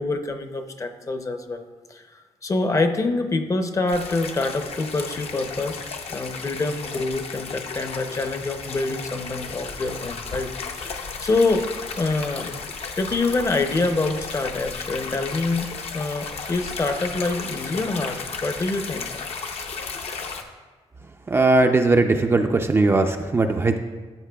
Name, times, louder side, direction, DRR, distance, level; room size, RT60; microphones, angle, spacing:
voice 1, 0.0-5.8 6.1-10.5 10.8-11.7 12.0-12.5 13.0-15.7 15.9-19.1, left 3 dB, 30° left, 7 dB, 0.6 m, -26 dB
sound 1, 3.9-20.4, left 5 dB, 65° left, 0.7 m, -34 dB
voice 2, 21.3-23.8, right 3 dB, 20° right, 5 dB, 0.4 m, -19 dB
13.0 x 7.5 x 2.3 m, 1.4 s
wide cardioid pair, 140°, 11 cm